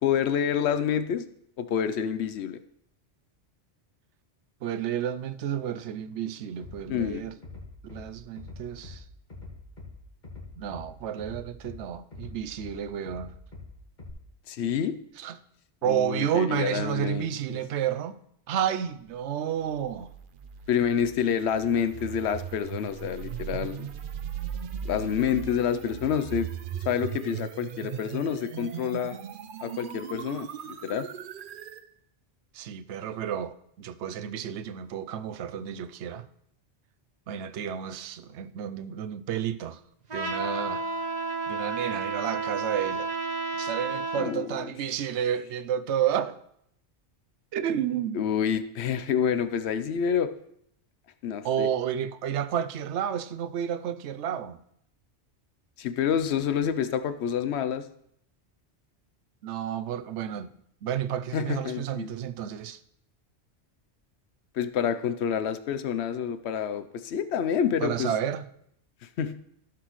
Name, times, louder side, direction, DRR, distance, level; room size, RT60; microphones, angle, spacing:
voice 1, 0.0-1.2 1.6-2.6 6.9-7.2 14.5-15.0 15.8-17.6 20.7-23.9 24.8-26.5 26.9-29.2 29.6-31.1 44.1-44.6 48.1-50.3 51.2-51.7 55.8-57.9 61.3-62.1 64.5-68.1 69.0-69.4, left 8 dB, 75° left, 0.9 m, -28 dB
voice 2, 4.6-7.3 7.9-9.0 10.6-13.3 15.2-15.4 15.8-18.2 18.5-20.1 32.5-36.3 37.3-39.8 40.1-40.9 41.5-43.1 43.6-46.4 47.5-48.2 51.4-54.6 59.4-60.5 60.8-62.8 67.8-68.5, right 9 dB, 85° right, 0.9 m, -31 dB
Bass drum, 6.6-7.1 7.4-8.0 8.4-9.0 9.3-9.9 10.2-10.8 11.2-11.8 12.1-12.7 13.1-13.7 14.0-14.1, left 3 dB, 40° left, 1.9 m, -42 dB
sound 1, 19.7-31.8, right 9 dB, 60° right, 0.7 m, -38 dB
Trumpet, 40.1-44.3, right 3 dB, 40° right, 1.0 m, -31 dB
14.5 x 6.1 x 3.1 m
omnidirectional pair, 1.1 m